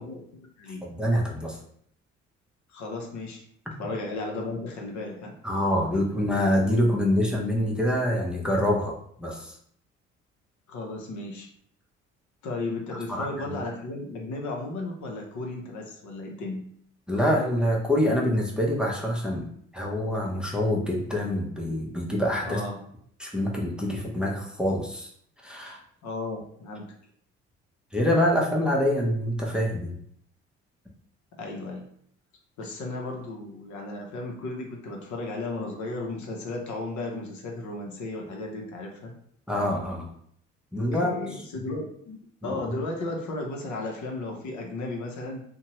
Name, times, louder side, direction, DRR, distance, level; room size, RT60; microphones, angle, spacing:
voice 1, 0.0-0.8 2.7-3.4 3.8-5.3 10.7-11.5 12.4-16.6 22.4-22.8 26.0-26.9 31.4-31.8 32.6-39.1 40.9-42.2 42.4-45.4, left 2 dB, 60° left, 0 dB, 0.8 m, -34 dB
voice 2, 0.8-1.6 5.4-9.6 13.1-13.6 17.1-19.5 19.7-22.6 23.2-25.1 25.4-25.8 27.9-29.9 39.5-40.1 40.7-41.4 42.4-42.6, left 1 dB, 5° right, -2 dB, 0.7 m, -26 dB
2.6 x 2.2 x 3.0 m, 0.65 s
hypercardioid pair, 50°, 33 cm